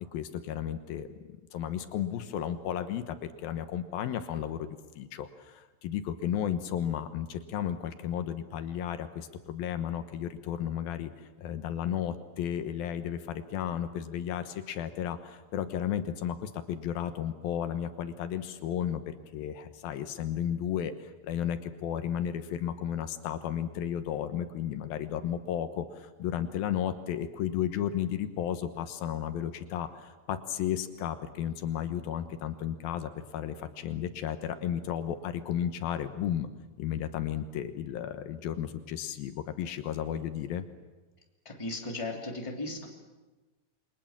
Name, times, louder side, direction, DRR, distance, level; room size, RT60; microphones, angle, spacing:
voice 1, 0.1-11.1 11.4-36.5 36.8-40.6, left 9 dB, 80° left, 9 dB, 3.0 m, -33 dB
voice 2, 41.4-42.9, left 2 dB, 10° left, 1 dB, 2.7 m, -36 dB
28.5 x 24.0 x 7.4 m, 1.2 s
omnidirectional pair, 4.2 m